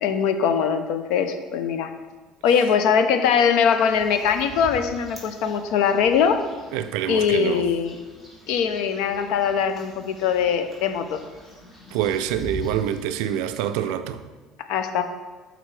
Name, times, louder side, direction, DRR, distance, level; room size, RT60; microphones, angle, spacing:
voice 1, 0.0-1.9 2.4-6.4 7.1-8.0 8.5-11.2 14.7-15.0, left 7 dB, 65° left, 0.5 m, -21 dB
sound 1, 3.7-13.7, left 1 dB, 10° left, 1.3 m, -43 dB
voice 2, 6.7-7.7 11.9-14.2, right 10 dB, 80° right, 0.3 m, -26 dB
8.9 x 3.9 x 3.2 m
cardioid pair, 170°, 0 cm